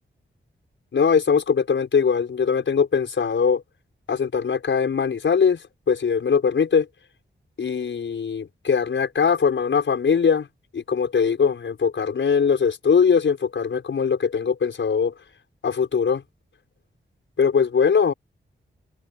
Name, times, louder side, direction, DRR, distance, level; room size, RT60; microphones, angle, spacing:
voice 1, 0.9-3.6 4.1-5.6 5.9-6.9 7.6-10.5 10.7-15.1 15.6-16.2 17.4-18.1, left 6 dB, 75° left, 5.8 m, -21 dB
wide cardioid pair, 120°, 20 cm